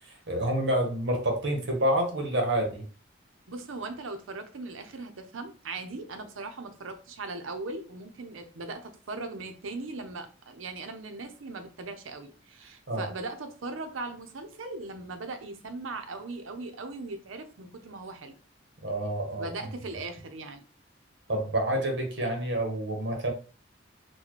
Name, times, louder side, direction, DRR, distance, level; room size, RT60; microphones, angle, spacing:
voice 1, 0.3-2.8 12.9-13.1 18.8-19.5 21.3-23.3, right 1 dB, 60° right, 3 dB, 1.0 m, -28 dB
voice 2, 3.5-18.3 19.3-20.6, right 3 dB, 90° right, 7 dB, 0.6 m, -39 dB
4.1 x 2.2 x 2.9 m, 0.37 s
head